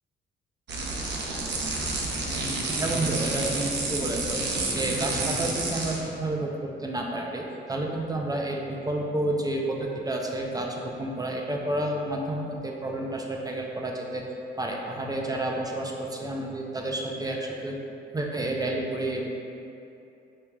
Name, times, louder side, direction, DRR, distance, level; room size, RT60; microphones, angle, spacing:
sound 1, 0.7-6.1, right 2 dB, 60° right, 0.6 m, -29 dB
voice 1, 2.8-4.4 4.7-14.2 14.6-17.8 18.1-19.3, right 1 dB, 20° right, -1 dB, 0.4 m, -30 dB
4.8 x 2.9 x 2.2 m, 2.8 s
cardioid pair, 90°, 20 cm